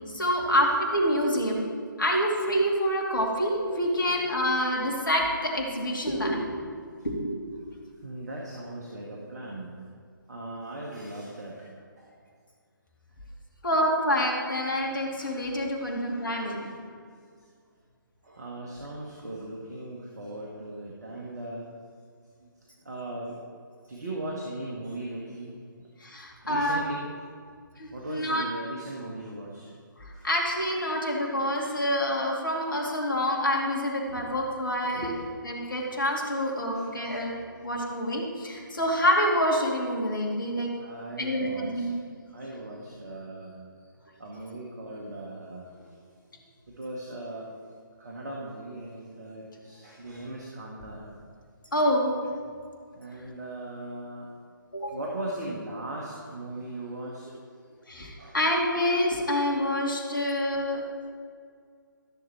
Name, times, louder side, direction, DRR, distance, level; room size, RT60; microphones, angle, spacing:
voice 1, 0.1-1.7 2.0-6.7 7.0-7.3 13.6-16.7 26.0-26.8 27.8-28.4 30.0-35.1 35.5-37.3 37.6-40.7 41.2-41.9 51.7-52.2 54.7-55.0 57.9-60.8, equal, 65° left, -1 dB, 2.6 m, -27 dB
voice 2, 8.0-9.7 10.3-11.7 12.0-12.1 14.8-14.9 15.2-15.4 15.8-16.7 18.2-21.7 22.4-22.5 22.8-23.4 23.9-25.9 26.4-27.1 27.9-29.6 30.1-30.3 31.6-31.8 34.1-34.3 34.8-35.2 36.3-36.4 36.7-36.8 40.8-41.8 42.3-43.6 44.2-46.0 46.7-47.5 48.0-51.1 52.9-54.3 54.9-57.3 57.9-58.4, right 1 dB, 50° right, -3 dB, 1.6 m, -39 dB
13.5 x 6.8 x 4.3 m, 2.1 s
figure-of-eight pair, 140°, 12 cm